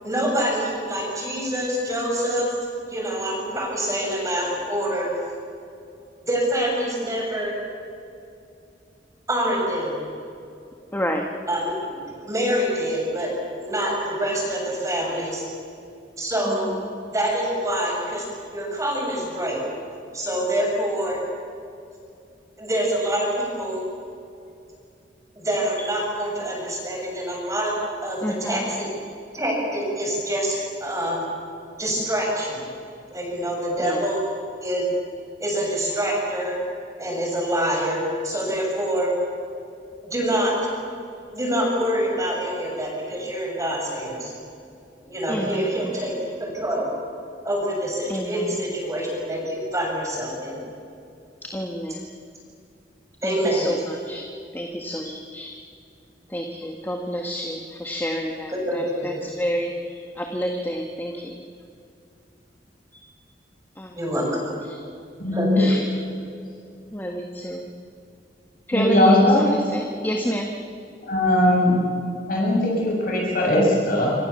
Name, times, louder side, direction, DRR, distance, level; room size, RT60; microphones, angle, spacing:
voice 1, 0.0-2.6 2.9-5.1 6.2-7.5 9.3-10.0 11.5-11.7 12.2-13.3 13.6-15.4 16.2-16.7 17.1-19.6 20.1-21.2 22.6-23.8 25.4-27.7 28.0-28.9 29.3-31.2 31.8-32.6 33.1-34.2 34.6-34.8 35.4-36.6 37.0-39.1 40.0-40.5 41.3-44.3 45.0-46.9 47.4-50.6 53.2-53.7 58.5-59.1 64.0-64.5 65.3-65.7, equal, 20° right, -1 dB, 7.0 m, -26 dB
voice 2, 10.9-11.3 16.5-16.8 25.8-25.9 28.2-28.7 33.8-34.0 45.3-45.7 48.1-48.6 51.4-52.0 53.2-54.3 54.5-55.5 56.3-61.4 62.9-63.0 63.8-64.0 64.7-64.8 65.6-66.2 66.9-67.7 68.7-70.5, equal, 10° left, 2 dB, 1.7 m, -29 dB
voice 3, 65.2-65.6 68.7-69.5 71.0-71.9 72.3-74.1, left 1 dB, 55° left, -3 dB, 6.9 m, -19 dB
27.0 x 25.5 x 7.2 m, 2.5 s
head